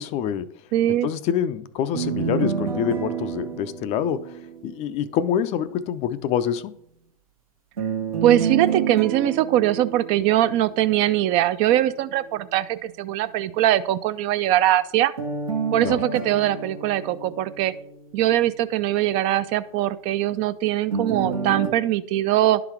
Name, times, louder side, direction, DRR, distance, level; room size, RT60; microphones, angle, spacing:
voice 1, 0.0-0.6 0.9-6.7 15.8-16.0, left 9 dB, 40° left, 0.4 m, -26 dB
voice 2, 0.7-1.1 8.2-15.1 15.7-17.7 18.1-22.6, right 13 dB, 40° right, 0.4 m, -21 dB
sound 1, 1.9-5.0 7.8-11.0 15.2-18.3 20.9-21.7, right 6 dB, 85° right, 1.3 m, -29 dB
11.0 x 3.9 x 4.5 m
hypercardioid pair, 100°, 18 cm